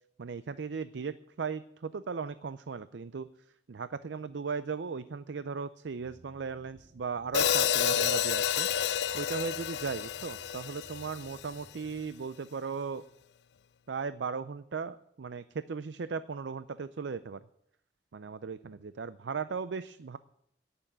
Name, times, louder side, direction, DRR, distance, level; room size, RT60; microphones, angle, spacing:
voice 1, 0.2-3.3 3.7-8.7 9.1-13.0 13.9-17.4 18.1-20.2, right 5 dB, 80° right, 14 dB, 0.5 m, -37 dB
sound 1, 6.0-12.1, right 1 dB, 35° right, 2.6 m, -58 dB
Hi-hat, 7.3-11.5, left 9 dB, 70° left, 0.4 m, -29 dB
17.5 x 7.0 x 8.6 m, 0.75 s
head